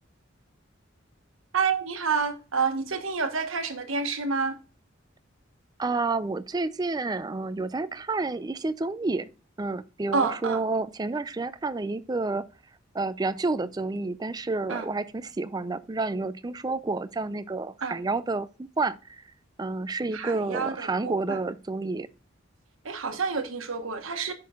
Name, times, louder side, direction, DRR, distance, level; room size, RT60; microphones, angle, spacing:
voice 1, 1.5-4.6 10.1-10.6 14.7-14.9 17.8-18.0 20.1-21.4 22.8-24.3, right 5 dB, 85° right, 1.2 m, -28 dB
voice 2, 5.8-9.3 9.6-12.4 12.9-19.2 19.6-22.1, right 3 dB, 20° right, 0.4 m, -30 dB
10.0 x 6.1 x 2.4 m
head